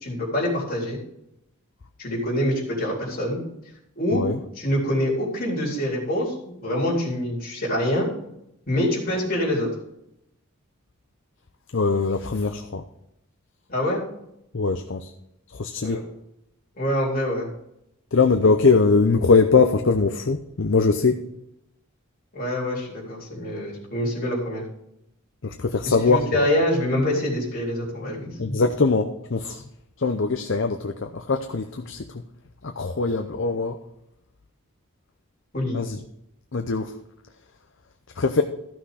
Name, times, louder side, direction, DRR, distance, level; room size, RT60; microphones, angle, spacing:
voice 1, 0.0-1.0 2.0-3.4 4.0-4.2 4.6-8.1 8.7-9.7 13.7-14.0 15.8-16.0 16.8-17.5 22.3-24.6 25.9-28.6 35.5-35.8, left 1 dB, 40° left, -3 dB, 3.6 m, -25 dB
voice 2, 11.7-12.8 14.5-15.1 15.5-16.0 18.1-21.2 25.4-26.5 28.4-29.6 30.0-32.2 32.6-33.8 35.7-36.0 36.5-36.9 38.2-38.4, left 4 dB, 55° left, 6 dB, 0.6 m, -21 dB
14.0 x 6.1 x 4.9 m, 0.81 s
head